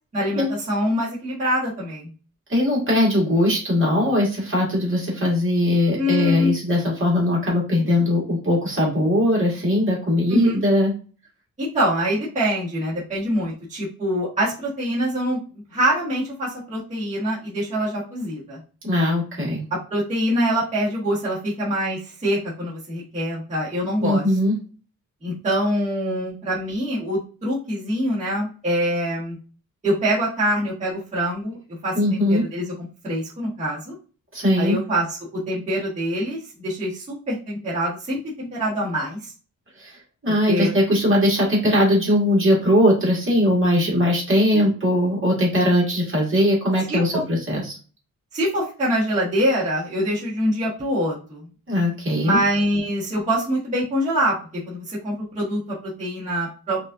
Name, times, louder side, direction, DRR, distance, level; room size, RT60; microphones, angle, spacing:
voice 1, 0.1-2.1 6.0-6.6 10.3-10.6 11.6-15.4 15.7-18.6 19.9-24.2 25.2-29.4 29.8-31.6 31.8-33.9 34.6-35.2 35.5-39.3 40.5-40.7 44.5-44.7 46.9-47.2 48.3-51.4 52.2-54.3 54.7-56.8, equal, 20° right, -9 dB, 1.4 m, -24 dB
voice 2, 2.5-10.9 18.8-19.6 24.0-24.6 31.9-32.4 34.3-34.8 39.8-47.8 51.7-52.4, left 1 dB, 40° right, -4 dB, 1.7 m, -20 dB
5.2 x 2.5 x 2.6 m, 0.36 s
wide cardioid pair, 175°, 33 cm